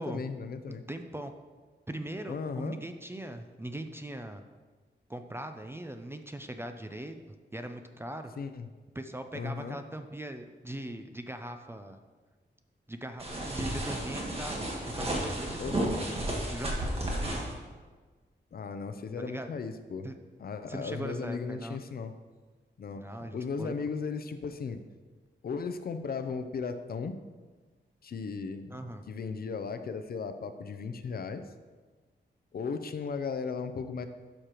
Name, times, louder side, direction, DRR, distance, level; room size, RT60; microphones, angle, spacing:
voice 1, 0.0-0.9 2.3-2.8 8.4-8.7 9.3-9.8 15.6-16.0 18.5-20.1 20.4-22.1 22.8-24.8 25.4-27.1 28.0-28.8 29.1-31.5 32.5-34.1, left 5 dB, 55° left, 9 dB, 0.5 m, -36 dB
voice 2, 0.7-1.3 1.9-4.4 5.1-7.2 7.5-8.3 9.0-12.0 12.9-16.2 16.5-17.4 19.2-19.5 20.0-20.1 20.7-21.8 22.9-23.7 28.7-29.0, right 1 dB, 15° right, 6 dB, 0.4 m, -40 dB
sound 1, 13.2-17.5, right 1 dB, 30° right, 1.4 m, -33 dB
11.5 x 6.4 x 3.0 m, 1.4 s
wide cardioid pair, 175°, 19 cm